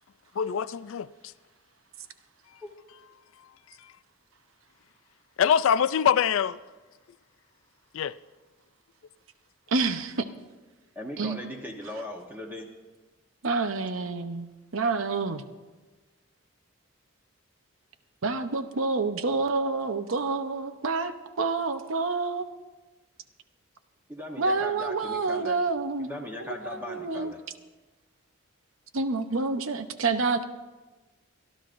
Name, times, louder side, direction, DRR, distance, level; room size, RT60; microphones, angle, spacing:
voice 1, 0.4-1.1 5.4-6.6 7.9-8.1, left 8 dB, 65° left, 0.3 m, -23 dB
voice 2, 9.7-10.3 11.2-11.5 13.4-14.5 14.7-15.4 18.2-22.5 24.4-26.1 26.4-27.3 28.9-30.4, right 3 dB, 70° right, 0.8 m, -28 dB
voice 3, 10.9-12.7 24.1-25.6 26.0-27.4, left 1 dB, 10° right, 1.0 m, -38 dB
26.0 x 12.0 x 2.6 m
head